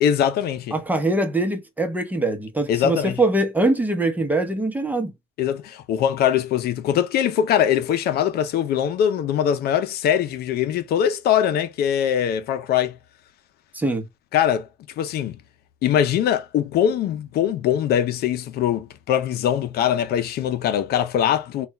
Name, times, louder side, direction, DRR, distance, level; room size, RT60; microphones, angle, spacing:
voice 1, 0.0-0.7 2.7-3.2 5.4-13.0 14.3-14.7 15.0-15.4 15.8-21.7, left 9 dB, 70° left, 0.6 m, -22 dB
voice 2, 0.7-5.1 13.7-14.0, right 2 dB, 10° right, 0.9 m, -23 dB
3.4 x 2.3 x 4.1 m
cardioid pair, 110°, 17 cm